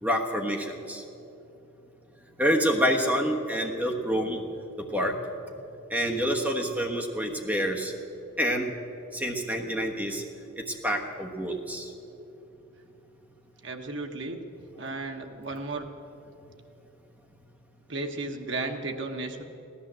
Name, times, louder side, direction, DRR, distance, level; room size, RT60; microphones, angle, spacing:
voice 1, 0.0-1.0 2.4-4.4 4.8-5.2 5.9-7.9 8.4-8.7 9.1-10.2 10.6-11.9, equal, 10° right, 1 dB, 1.2 m, -27 dB
voice 2, 13.6-14.4 14.8-15.9 17.9-19.4, right 2 dB, 60° right, 4 dB, 1.2 m, -34 dB
16.5 x 11.5 x 7.5 m, 3.0 s
head